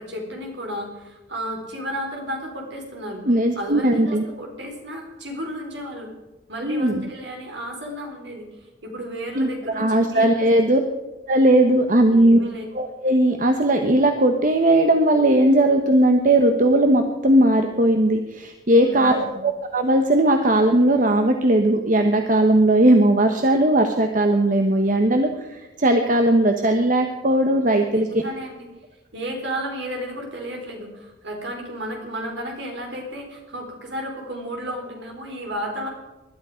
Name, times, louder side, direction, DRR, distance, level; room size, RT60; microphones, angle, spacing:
voice 1, 0.0-6.1 6.5-10.5 12.1-12.6 18.8-19.4 27.9-28.7 29.1-35.9, equal, 65° right, 1 dB, 4.3 m, -33 dB
voice 2, 3.3-4.2 6.6-7.1 9.4-10.8 11.3-12.4 12.7-28.2, right 1 dB, 45° right, 5 dB, 1.1 m, -18 dB
19.5 x 12.0 x 5.1 m, 1.1 s
head